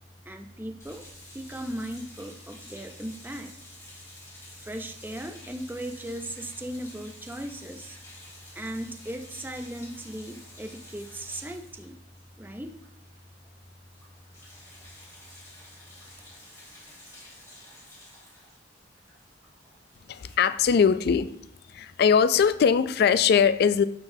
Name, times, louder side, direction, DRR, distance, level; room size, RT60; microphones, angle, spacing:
voice 1, 0.3-1.0 1.3-3.5 4.6-8.0 8.5-12.0 12.4-12.7, right 1 dB, 10° right, 5 dB, 0.5 m, -37 dB
sound 1, 0.8-13.2 13.4-13.6 13.9-20.3, left 1 dB, 15° left, 2.6 m, -50 dB
voice 2, 20.1-21.3 21.7-23.8, left 6 dB, 60° left, 14 dB, 0.3 m, -21 dB
11.5 x 3.8 x 2.7 m, 0.70 s
head